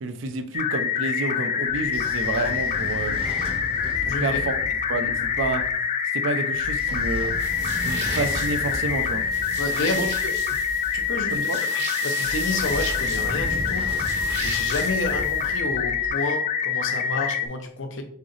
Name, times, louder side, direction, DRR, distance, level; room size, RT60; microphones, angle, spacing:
voice 1, 0.0-3.2 4.0-4.6 4.9-5.7 6.1-7.4 7.8-9.3 9.8-10.1 11.3-11.6, right 3 dB, 80° right, 8 dB, 0.5 m, -29 dB
sound 1, 0.5-17.5, left 7 dB, 35° left, 0.4 m, -26 dB
Train / Sliding door, 1.7-5.7 6.5-11.4 12.2-16.1, equal, 30° right, 0.7 m, -36 dB
voice 2, 4.1-4.4 9.6-10.3 10.9-11.4 12.0-14.1 14.4-18.0, left 2 dB, 80° left, 6 dB, 0.7 m, -30 dB
sound 2, 7.4-15.6, right 4 dB, 55° right, 1.0 m, -37 dB
3.8 x 3.2 x 3.8 m, 0.63 s
head